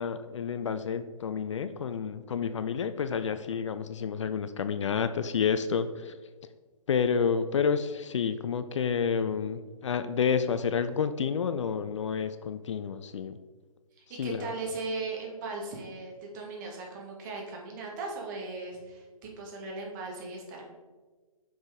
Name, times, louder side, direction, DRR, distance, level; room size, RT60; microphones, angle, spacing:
voice 1, 0.0-6.2 6.9-13.4 14.2-14.5, left 6 dB, 55° left, 11 dB, 0.4 m, -29 dB
voice 2, 14.0-20.6, right 3 dB, 30° right, -1 dB, 1.3 m, -38 dB
5.9 x 5.0 x 3.5 m, 1.3 s
figure-of-eight pair, 135°, 19 cm